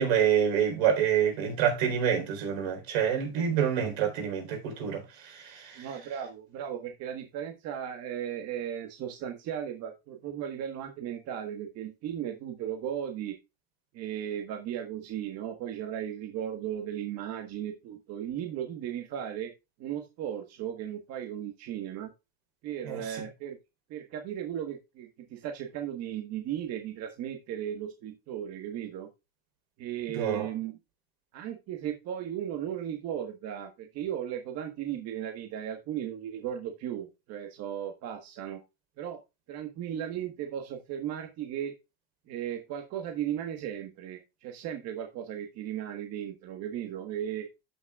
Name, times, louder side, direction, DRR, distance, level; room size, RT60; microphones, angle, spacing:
voice 1, 0.0-5.9 22.9-23.2 30.1-30.5, right 8 dB, 90° right, 4.1 m, -27 dB
voice 2, 5.7-13.4 13.9-19.5 19.8-22.1 22.6-23.6 23.9-29.1 29.8-30.8 31.3-38.6 39.0-39.2 39.5-41.7 42.3-47.5, right 10 dB, 55° right, 1.5 m, -36 dB
14.0 x 6.3 x 2.4 m
supercardioid pair, 125°, 31 cm